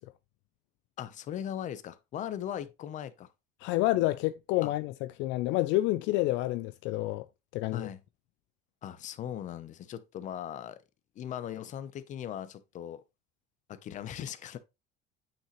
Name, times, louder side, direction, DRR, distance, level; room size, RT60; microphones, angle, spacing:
voice 1, 1.0-3.3 4.6-4.7 7.7-8.0 8.8-10.8 11.2-13.0 13.7-14.6, left 10 dB, 35° left, 0.8 m, -39 dB
voice 2, 3.6-7.3 7.5-7.9, left 17 dB, 65° left, 0.4 m, -29 dB
8.7 x 5.8 x 3.1 m
cardioid pair, 160°, 21 cm